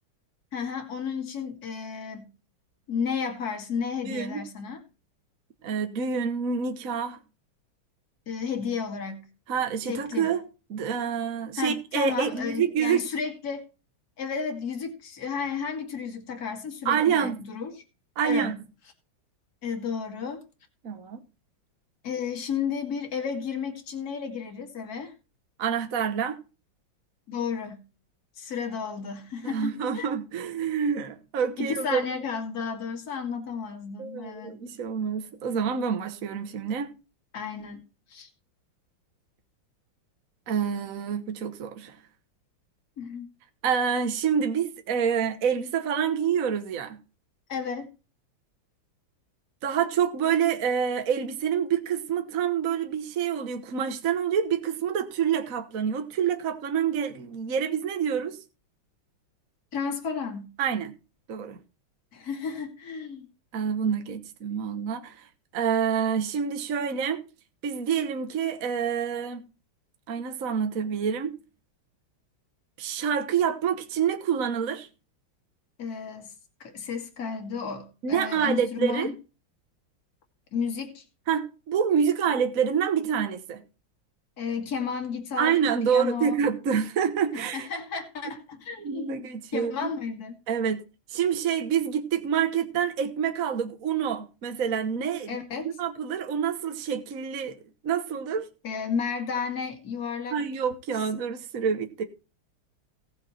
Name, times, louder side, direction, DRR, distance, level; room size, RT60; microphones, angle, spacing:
voice 1, 0.5-2.3 2.9-4.8 8.3-9.2 9.9-10.3 11.6-13.6 14.2-17.8 18.2-18.6 19.6-20.4 22.0-25.1 27.3-27.8 28.4-30.1 31.6-34.6 37.3-37.8 38.1-38.3 43.0-43.3 47.5-47.9 59.7-60.5 62.1-63.3 75.8-76.3 76.6-79.1 80.5-81.0 84.4-86.4 87.3-90.3 95.3-95.7 98.6-100.4, left 6 dB, 50° left, 2.8 m, -32 dB
voice 2, 4.1-4.4 5.6-7.2 9.5-10.4 10.7-13.0 16.8-17.4 18.2-18.5 20.8-21.2 25.6-26.4 29.4-32.0 34.0-36.9 40.5-42.0 43.6-47.0 49.6-58.4 60.6-60.9 61.3-61.6 63.5-65.3 65.5-67.2 67.6-69.5 70.1-71.4 72.8-74.9 78.0-79.1 81.3-83.6 85.4-87.7 88.8-89.9 90.5-90.8 91.1-97.6 97.8-98.5 100.3-102.0, right 7 dB, 50° right, 1.5 m, -27 dB
18.0 x 6.2 x 4.4 m
omnidirectional pair, 2.2 m